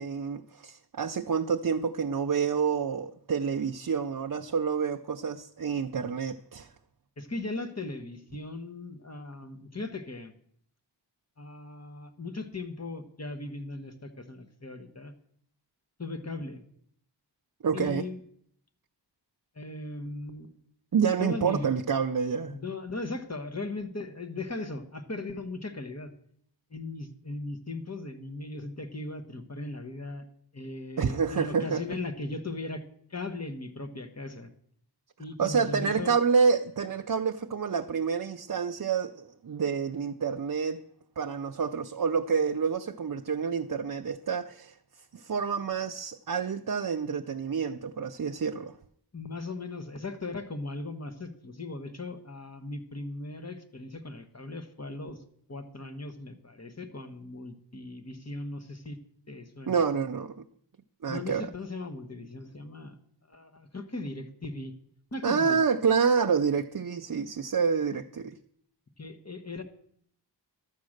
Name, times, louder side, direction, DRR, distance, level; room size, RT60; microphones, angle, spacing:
voice 1, 0.0-6.7 17.6-18.0 20.9-22.6 31.0-31.8 35.4-40.8 41.2-44.8 45.1-48.7 59.7-60.4 61.0-61.5 65.2-68.4, right 6 dB, 50° right, 0.5 m, -28 dB
voice 2, 7.2-10.3 11.4-15.1 16.0-16.6 17.7-18.2 19.5-20.5 21.2-21.7 22.5-26.1 26.7-30.3 30.5-32.8 33.1-34.5 35.2-36.2 49.1-55.2 55.5-59.0 59.3-59.8 61.1-63.0 63.3-64.7 65.1-65.6 69.0-69.6, left 2 dB, 35° left, 1.3 m, -38 dB
12.0 x 7.4 x 6.5 m
wide cardioid pair, 55°, 43 cm